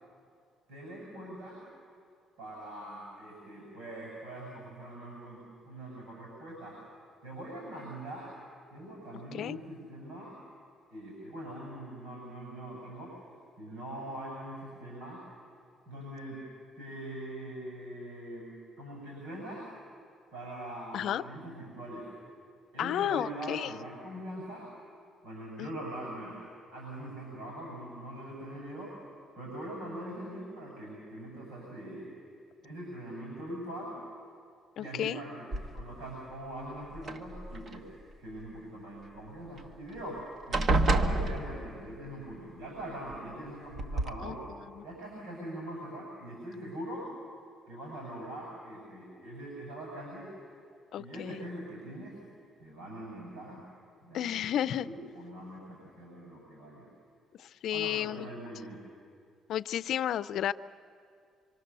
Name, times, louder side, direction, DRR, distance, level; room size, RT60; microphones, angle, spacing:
voice 1, 0.7-1.6 2.4-6.8 7.2-8.3 8.7-10.4 10.9-13.1 13.6-15.2 15.8-16.5 16.8-19.7 20.3-22.1 22.7-24.7 25.2-26.4 26.7-32.1 32.6-34.0 34.8-37.9 38.2-44.4 44.8-47.1 47.7-50.4 51.0-52.2 52.6-53.6 54.0-56.9 57.7-58.8, right 1 dB, 85° right, -3 dB, 6.7 m, -42 dB
voice 2, 22.8-23.7 25.6-25.7 34.8-35.2 44.2-44.4 44.8-44.9 50.9-51.4 54.1-54.9 57.4-58.3 59.5-60.5, left 11 dB, 65° left, 14 dB, 0.6 m, -32 dB
sound 1, 35.5-36.1 36.9-37.8 39.6-39.7 40.0-40.2 40.5-42.0 43.1-43.2 43.7-44.1, right 2 dB, 45° right, 1.5 m, -29 dB
27.0 x 25.0 x 6.9 m, 2.3 s
cardioid pair, 105°, 0 cm